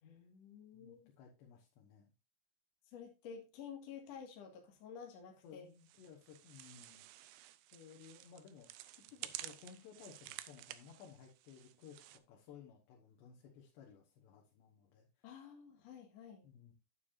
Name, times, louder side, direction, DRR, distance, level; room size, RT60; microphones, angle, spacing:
voice 1, 0.0-1.1 2.9-5.7 15.2-16.5, left 7 dB, 50° left, 2 dB, 2.4 m, -51 dB
voice 2, 0.7-2.1 5.4-7.0 7.7-8.7 9.1-15.5 16.4-16.7, left 7 dB, 90° left, -1 dB, 3.6 m, -58 dB
sound 1, 5.8-12.2, right 15 dB, 85° right, 2.1 m, -52 dB
9.4 x 8.9 x 2.6 m, 0.27 s
omnidirectional pair, 4.8 m